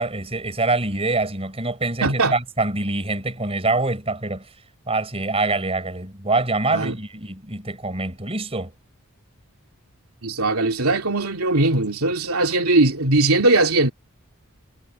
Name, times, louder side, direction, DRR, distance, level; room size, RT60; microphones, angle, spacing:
voice 1, 0.0-4.5 4.9-8.7, right 3 dB, 25° right, 4.6 m, -25 dB
voice 2, 2.0-2.3 6.7-6.9 10.2-13.9, right 2 dB, 75° right, 3.0 m, -19 dB
head